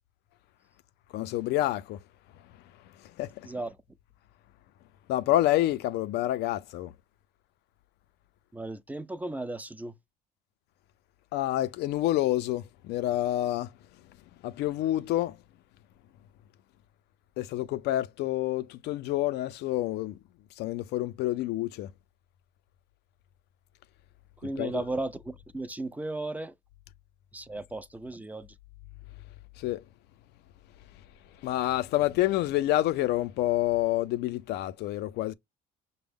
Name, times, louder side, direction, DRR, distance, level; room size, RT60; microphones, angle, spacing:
voice 1, 1.1-2.0 3.2-3.5 5.1-6.9 11.3-13.7 14.4-15.4 17.4-20.2 20.6-21.9 24.6-24.8 29.6-29.8 31.4-35.3, left 15 dB, 80° left, 0.4 m, -28 dB
voice 2, 3.4-3.8 8.5-10.0 24.4-26.5 27.3-28.5, right 2 dB, 10° right, 0.4 m, -35 dB
6.0 x 2.1 x 3.6 m
cardioid pair, 110°, 17 cm